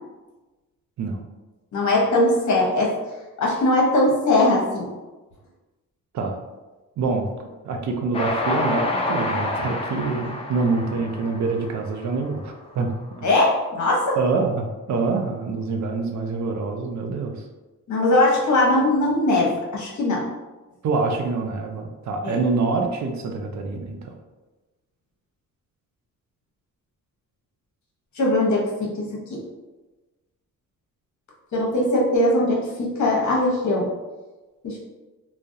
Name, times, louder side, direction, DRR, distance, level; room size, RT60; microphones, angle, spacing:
voice 1, 1.7-2.9 3.4-4.9 13.2-14.2 17.9-20.2 22.2-22.4 28.1-29.4 31.5-33.9 34.6-34.8, left 1 dB, 60° left, -3 dB, 0.8 m, -20 dB
voice 2, 7.0-7.3 7.6-12.9 13.2-13.3 14.2-17.3 20.8-24.1, right 4 dB, 60° right, 3 dB, 0.5 m, -25 dB
Train, 8.1-12.5, left 2 dB, 20° left, 0.3 m, -28 dB
2.2 x 2.1 x 2.6 m, 1.2 s
cardioid pair, 85°, 32 cm